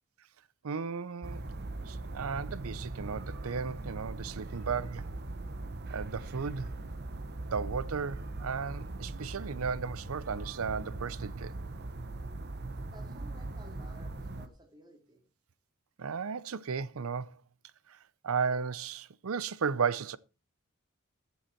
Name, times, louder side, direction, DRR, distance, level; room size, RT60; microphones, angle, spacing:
voice 1, 0.6-1.5 1.8-5.1 5.9-6.7 7.5-11.5 16.0-17.4 17.9-18.0 18.2-20.2, right 5 dB, 80° right, 0.6 m, -34 dB
sound 1, 1.2-14.5, right 2 dB, 50° right, 1.0 m, -40 dB
voice 2, 12.9-15.2, right 1 dB, 20° right, 2.6 m, -55 dB
14.0 x 7.1 x 4.4 m
head